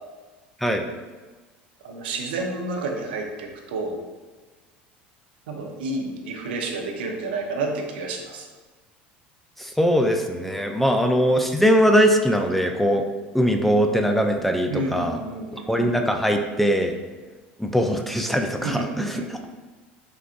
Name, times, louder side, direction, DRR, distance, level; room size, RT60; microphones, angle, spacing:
voice 1, 1.8-4.0 5.5-8.5 10.9-11.0 14.7-15.7 18.6-19.3, right 3 dB, 75° right, 2 dB, 0.6 m, -30 dB
voice 2, 9.6-13.0 13.3-15.2 15.7-16.9 17.6-19.5, equal, 5° left, 3 dB, 0.4 m, -21 dB
3.9 x 3.4 x 2.5 m, 1.3 s
hypercardioid pair, 75°, 5 cm